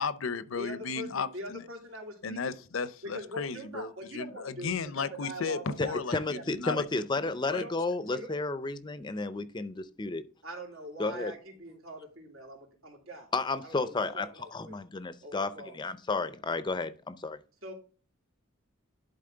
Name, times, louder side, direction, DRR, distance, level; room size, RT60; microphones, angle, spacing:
voice 1, 0.0-1.6 2.2-6.8 7.5-7.7, left 5 dB, 75° left, 0.6 m, -34 dB
voice 2, 0.6-2.5 3.1-6.4 6.7-6.9 7.5-7.7 8.1-8.3 10.4-13.3 13.6-14.7 15.2-15.8 17.6-17.7, equal, 85° right, 2.9 m, -43 dB
voice 3, 5.8-10.2 11.0-11.3 13.3-14.3 14.5-17.4, left 3 dB, 20° left, 0.5 m, -32 dB
11.0 x 4.1 x 3.8 m
head